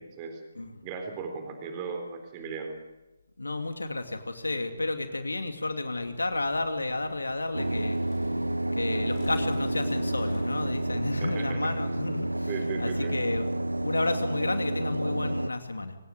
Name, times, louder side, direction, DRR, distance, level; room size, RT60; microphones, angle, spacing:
voice 1, 0.0-0.4 0.8-2.8 11.2-11.7 12.5-13.2, right 5 dB, 25° right, 5 dB, 3.9 m, -37 dB
voice 2, 3.4-8.0 8.7-12.5 12.8-13.4 13.8-16.0, left 2 dB, 75° left, 7 dB, 2.6 m, -31 dB
sound 1, 6.0-11.4, left 6 dB, 35° left, 3.0 m, -47 dB
sound 2, 7.5-15.5, right 1 dB, 85° right, 0.8 m, -30 dB
25.5 x 17.5 x 9.0 m, 1.0 s
figure-of-eight pair, 140°, 0 cm